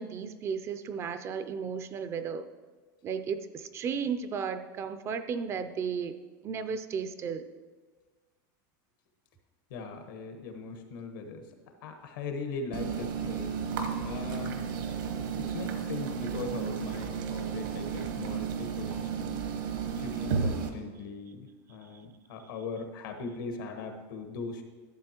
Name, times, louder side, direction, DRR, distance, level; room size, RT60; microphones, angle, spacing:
voice 1, 0.0-2.5 3.0-6.1 6.4-7.4, right 6 dB, 25° right, 10 dB, 0.3 m, -34 dB
voice 2, 9.7-11.5 11.8-13.6 14.0-14.6 15.4-19.4 19.9-24.6, left 4 dB, 80° left, 5 dB, 1.2 m, -40 dB
sound 1, 12.7-20.7, right 6 dB, 75° right, 1.1 m, -33 dB
12.0 x 7.4 x 2.9 m, 1.4 s
supercardioid pair, 155°, 11 cm